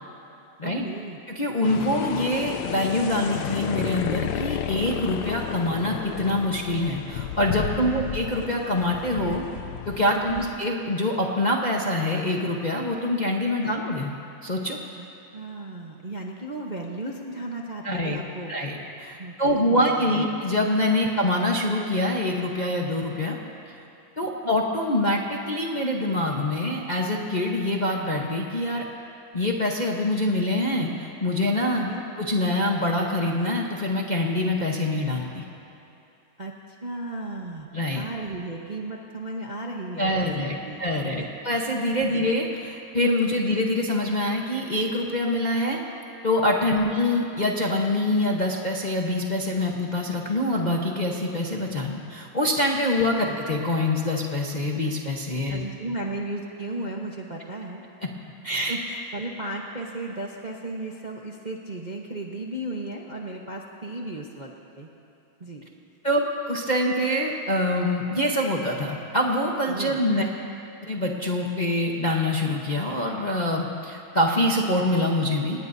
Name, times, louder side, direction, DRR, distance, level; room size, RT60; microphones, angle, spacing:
voice 1, 0.6-1.2 1.9-2.0 7.7-8.0 10.1-10.5 13.6-13.8 15.0-15.1 15.3-18.5 19.1-20.2 21.0-21.1 24.4-24.5 31.9-32.0 36.4-37.7 37.9-41.4 42.0-42.3 43.3-43.5 55.5-57.8 58.5-64.9 65.4-65.6 69.7-70.0, right 2 dB, 35° right, -1 dB, 0.8 m, -35 dB
voice 2, 1.3-9.4 9.9-14.1 14.4-14.8 17.8-18.2 18.5-23.4 24.2-28.8 29.3-31.9 32.2-35.4 37.7-38.0 40.0-45.8 46.2-55.6 58.4-58.8 66.0-70.2 70.8-75.6, left 1 dB, 30° left, -1 dB, 0.9 m, -25 dB
sound 1, 1.6-10.5, left 9 dB, 70° left, 1.0 m, -32 dB
27.0 x 19.5 x 2.7 m, 2.8 s
omnidirectional pair, 2.2 m